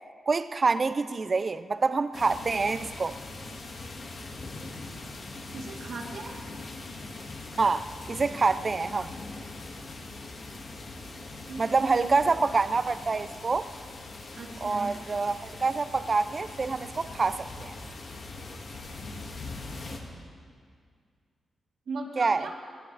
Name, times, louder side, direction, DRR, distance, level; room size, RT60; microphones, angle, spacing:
voice 1, 0.3-3.2 7.6-9.1 11.6-13.7 14.6-17.8 22.2-22.5, right 4 dB, 30° right, 13 dB, 0.4 m, -26 dB
sound 1, 2.1-20.0, left 3 dB, 50° left, 1.9 m, -41 dB
voice 2, 5.5-6.4 11.5-12.1 14.3-14.9 21.9-22.5, right 3 dB, 75° right, -3 dB, 3.0 m, -38 dB
19.0 x 18.5 x 3.3 m, 2.1 s
wide cardioid pair, 160°, 0 cm